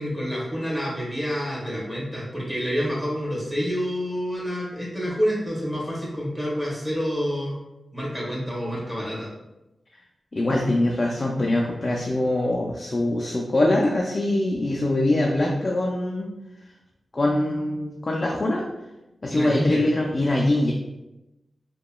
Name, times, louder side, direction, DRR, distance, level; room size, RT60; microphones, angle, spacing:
voice 1, 0.0-7.6 7.9-9.3 19.3-19.8, equal, 5° right, -6 dB, 1.1 m, -28 dB
voice 2, 10.3-16.3 17.1-18.6 19.2-20.7, left 1 dB, 40° left, -1 dB, 0.3 m, -23 dB
2.8 x 2.2 x 2.2 m, 0.99 s
cardioid pair, 65°, 0 cm